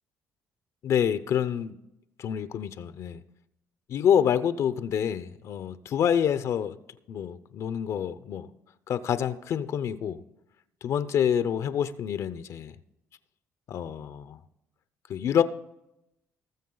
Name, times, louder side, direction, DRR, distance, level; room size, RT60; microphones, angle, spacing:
voice 1, 0.8-1.7 2.2-3.2 3.9-6.8 7.1-8.5 8.9-10.2 10.8-12.8 13.7-14.4 15.1-15.4, left 8 dB, 60° left, 0.6 m, -27 dB
19.5 x 7.0 x 3.9 m
cardioid pair, 100°, 6 cm